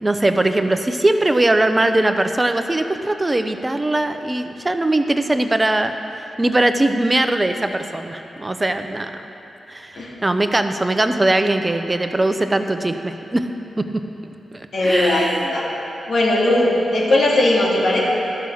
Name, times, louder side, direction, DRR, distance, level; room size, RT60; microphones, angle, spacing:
voice 1, 0.0-5.9 6.4-9.2 9.7-13.5 13.8-13.9 14.5-15.5, right 2 dB, 25° right, 8 dB, 0.8 m, -20 dB
voice 2, 14.7-15.6 16.1-18.0, left 1 dB, 70° left, -4 dB, 2.3 m, -18 dB
12.5 x 6.3 x 7.0 m, 3.0 s
supercardioid pair, 40°, 0 cm